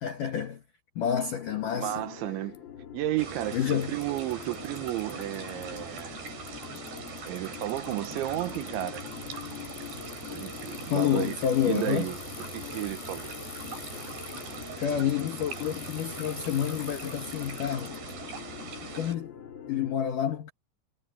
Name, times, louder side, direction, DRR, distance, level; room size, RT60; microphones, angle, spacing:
voice 1, 0.0-0.6 1.0-2.0 3.5-4.0 10.9-12.1 14.8-18.0 18.8-19.4 19.7-20.5, left 9 dB, 80° left, 1.9 m, -29 dB
sound 1, 1.4-20.0, left 8 dB, 40° left, 1.7 m, -44 dB
voice 2, 1.7-2.6 2.9-3.6 3.9-6.2 7.2-9.0 10.3-11.3 11.7-12.2 12.5-13.4, right 14 dB, 80° right, 3.1 m, -32 dB
Bicycle, 2.5-2.6 3.5-3.6 3.8-6.0 6.3-18.1, left 11 dB, 60° left, 3.5 m, -48 dB
sound 2, 3.2-19.1, right 5 dB, 55° right, 7.0 m, -42 dB
omnidirectional pair, 5.9 m